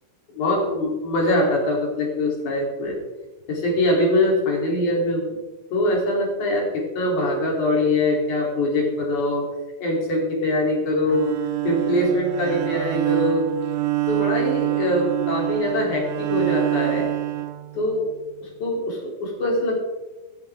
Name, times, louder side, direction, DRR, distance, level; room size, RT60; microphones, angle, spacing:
voice 1, 0.3-3.0 3.5-5.3 5.7-9.4 9.8-11.3 11.6-13.5 14.1-17.1 17.7-18.1 18.4-19.8, left 1 dB, 45° left, -1 dB, 4.3 m, -23 dB
Bowed string instrument, 11.0-18.2, right 18 dB, 75° right, 2.8 m, -26 dB
14.5 x 14.0 x 3.6 m, 1.1 s
omnidirectional pair, 5.3 m